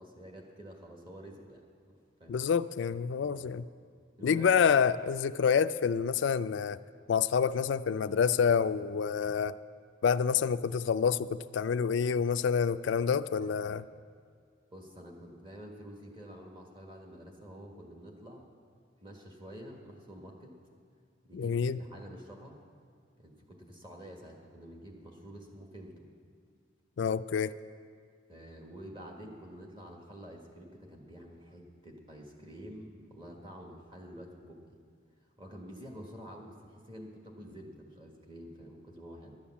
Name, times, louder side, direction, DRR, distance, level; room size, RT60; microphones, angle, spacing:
voice 1, 0.0-1.6 2.2-2.4 3.2-3.6 4.2-4.6 13.4-13.8 14.7-18.4 19.0-20.5 21.2-22.6 23.2-26.1 28.3-34.8 35.4-39.4, equal, 25° right, 1 dB, 1.5 m, -48 dB
voice 2, 2.3-3.6 4.2-6.8 7.1-9.6 10.0-13.8 21.3-21.8 27.0-27.5, left 6 dB, 60° left, 13 dB, 0.3 m, -28 dB
12.0 x 8.7 x 7.2 m, 2.2 s
head